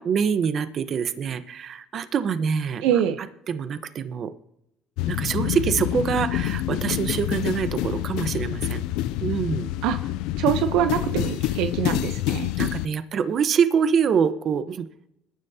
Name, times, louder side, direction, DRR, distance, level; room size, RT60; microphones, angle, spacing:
voice 1, 0.1-2.8 3.5-4.3 5.0-8.8 9.2-9.7 12.6-14.9, right 7 dB, 50° right, 10 dB, 1.1 m, -25 dB
voice 2, 2.8-3.2 9.8-10.0 10.4-12.5, right 10 dB, 80° right, 9 dB, 0.9 m, -24 dB
sound 1, 5.0-12.9, left 14 dB, 80° left, 0.4 m, -27 dB
21.5 x 10.0 x 2.9 m, 0.78 s
supercardioid pair, 95°, 0 cm